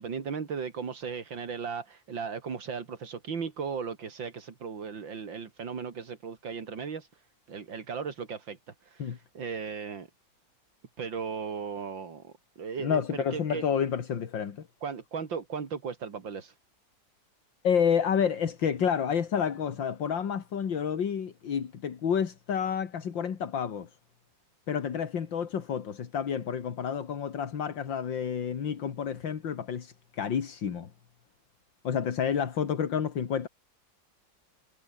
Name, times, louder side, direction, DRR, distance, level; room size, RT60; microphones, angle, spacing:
voice 1, 0.0-7.2 7.5-10.1 11.0-13.6 14.8-16.5, right 6 dB, 85° right, 3.2 m, -36 dB
voice 2, 12.8-14.7 17.6-23.9 24.7-30.9 31.8-33.5, left 7 dB, 80° left, 2.6 m, -29 dB
omnidirectional pair, 2.0 m